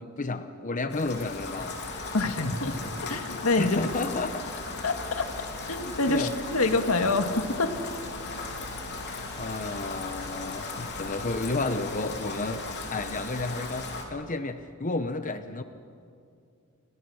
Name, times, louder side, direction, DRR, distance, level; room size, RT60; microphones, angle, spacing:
voice 1, 0.0-1.8 3.6-4.4 6.1-6.3 9.4-15.6, left 3 dB, 40° left, 9 dB, 0.9 m, -31 dB
Rain, 0.9-14.0, left 3 dB, 55° left, 3.5 m, -37 dB
voice 2, 2.1-3.8 4.8-5.2 5.7-7.8, left 3 dB, 85° left, 7 dB, 1.9 m, -26 dB
30.0 x 24.0 x 6.4 m, 2.4 s
head